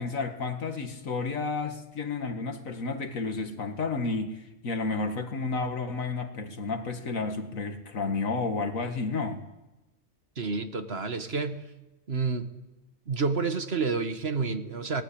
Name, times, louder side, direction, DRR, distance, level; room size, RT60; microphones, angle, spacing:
voice 1, 0.0-9.4, left 4 dB, 85° left, 7 dB, 2.2 m, -31 dB
voice 2, 10.4-11.6 12.1-12.5 13.1-15.0, right 4 dB, 50° right, 8 dB, 1.7 m, -29 dB
23.5 x 19.0 x 8.7 m, 1.0 s
omnidirectional pair, 1.4 m